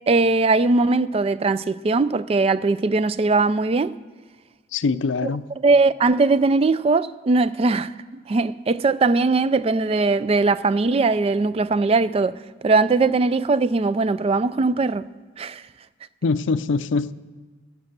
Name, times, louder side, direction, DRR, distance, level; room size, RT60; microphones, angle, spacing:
voice 1, 0.1-3.9 5.6-7.9 8.3-15.1 15.4-15.6, right 3 dB, 30° right, 0.3 m, -20 dB
voice 2, 4.7-5.5 16.2-17.1, left 4 dB, 85° left, 0.5 m, -23 dB
12.5 x 8.7 x 6.7 m
head